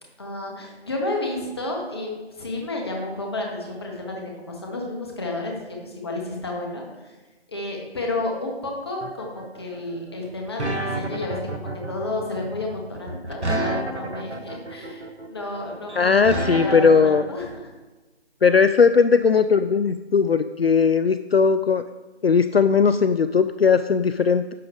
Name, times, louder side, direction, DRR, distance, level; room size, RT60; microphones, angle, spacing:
voice 1, 0.2-7.2 7.5-17.7, left 2 dB, 25° left, 0 dB, 1.4 m, -31 dB
sound 1, 9.0-17.2, right 2 dB, 85° right, 1.2 m, -30 dB
voice 2, 16.0-17.2 18.4-21.8 22.2-24.5, left 5 dB, 65° left, 11 dB, 0.4 m, -18 dB
10.5 x 6.2 x 3.6 m, 1.2 s
figure-of-eight pair, 160°, 33 cm